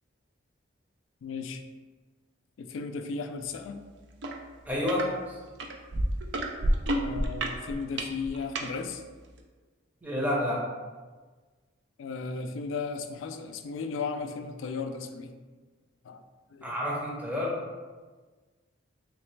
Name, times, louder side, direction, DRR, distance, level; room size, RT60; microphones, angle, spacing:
voice 1, 1.2-1.6 2.6-3.8 6.9-9.0 12.0-15.3 16.0-16.2 16.5-16.7, left 4 dB, 85° left, 8 dB, 0.3 m, -35 dB
sound 1, 4.2-4.4 4.7-5.1 5.6-8.7 9.4-9.5, right 1 dB, 65° right, 0.4 m, -28 dB
voice 2, 4.7-5.4 10.0-10.7 16.6-17.6, left 1 dB, 10° right, -4 dB, 0.7 m, -29 dB
3.2 x 3.0 x 3.2 m, 1.4 s
head